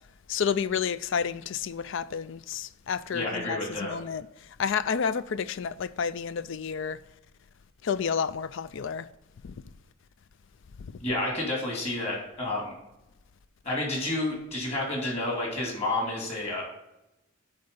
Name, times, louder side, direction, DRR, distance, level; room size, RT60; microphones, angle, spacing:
voice 1, 0.3-4.3 4.6-7.0 7.8-9.1 9.4-9.5, left 6 dB, 60° left, 0.4 m, -30 dB
voice 2, 3.1-3.9 11.0-12.7 13.6-16.6, left 2 dB, 30° left, 2.7 m, -30 dB
9.5 x 3.9 x 5.3 m
head